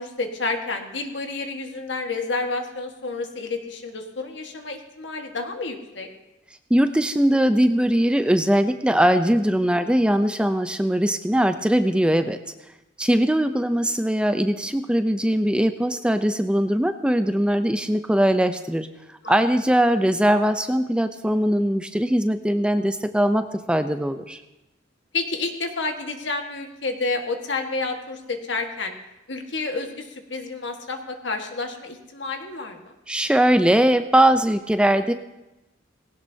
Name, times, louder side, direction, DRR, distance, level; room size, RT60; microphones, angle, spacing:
voice 1, 0.0-6.1 19.2-19.4 25.1-28.9 29.3-32.9, left 3 dB, 75° left, 4 dB, 1.6 m, -30 dB
voice 2, 6.7-12.4 13.0-18.9 19.3-24.4 33.1-35.1, right 1 dB, 5° right, 9 dB, 0.5 m, -20 dB
18.5 x 17.0 x 2.8 m, 0.95 s
head